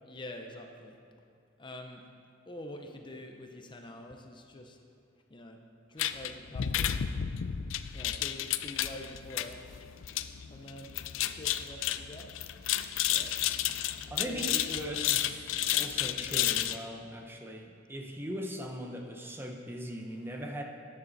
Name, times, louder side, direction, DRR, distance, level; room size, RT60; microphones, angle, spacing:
voice 1, 0.1-1.0 1.6-2.1 2.5-4.8 5.3-5.6 5.9-7.0 7.9-9.6 10.5-12.3 12.9-13.4 14.2-14.9 16.2-16.5, left 1 dB, 25° left, 3 dB, 0.7 m, -45 dB
sound 1, 6.0-16.8, left 11 dB, 75° left, 0.4 m, -32 dB
voice 2, 14.1-20.6, equal, 10° right, 2 dB, 0.8 m, -40 dB
13.0 x 9.8 x 4.1 m, 2.3 s
head